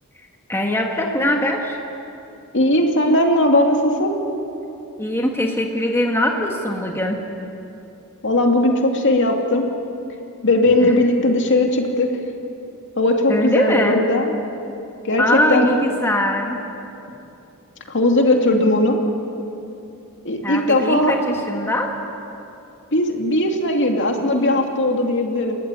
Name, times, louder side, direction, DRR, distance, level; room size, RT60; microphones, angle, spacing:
voice 1, 0.5-1.8 5.0-7.2 10.8-10.9 13.3-14.0 15.2-16.6 20.4-21.9, left 1 dB, 10° left, 1 dB, 1.6 m, -21 dB
voice 2, 2.5-4.1 8.2-9.6 10.4-12.1 13.0-14.3 15.0-15.7 17.9-19.0 20.2-21.1 22.9-25.6, left 1 dB, 55° left, 2 dB, 2.6 m, -18 dB
29.0 x 15.5 x 9.9 m, 2.9 s
head